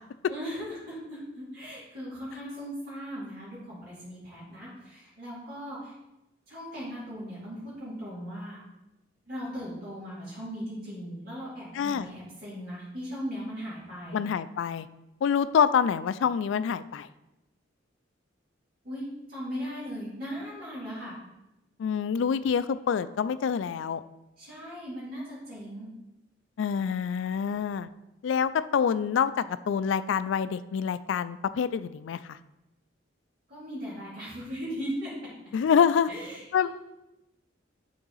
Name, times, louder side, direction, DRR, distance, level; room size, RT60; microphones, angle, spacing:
voice 1, 0.3-5.9 6.5-8.6 9.3-14.2 18.8-21.1 24.4-25.9 33.5-35.1 36.1-36.7, equal, 50° right, -9 dB, 2.3 m, -38 dB
voice 2, 11.8-12.1 14.1-14.9 15.2-17.1 21.8-24.0 26.6-27.9 28.2-32.2 35.5-36.1 36.5-36.7, left 7 dB, 65° left, 14 dB, 0.3 m, -26 dB
8.7 x 3.9 x 3.9 m, 0.94 s
head